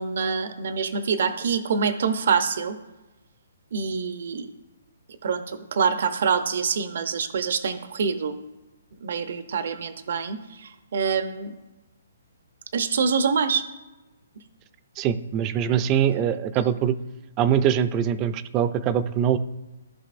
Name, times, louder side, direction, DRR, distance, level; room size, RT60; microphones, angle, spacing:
voice 1, 0.0-2.8 3.7-4.5 5.2-8.3 9.0-11.5 12.7-13.6 15.6-15.8, right 6 dB, 65° right, 10 dB, 0.7 m, -25 dB
voice 2, 15.0-17.0 17.4-19.4, right 9 dB, 25° right, 12 dB, 0.4 m, -23 dB
14.5 x 5.3 x 2.5 m, 1.1 s
hypercardioid pair, 150°, 0 cm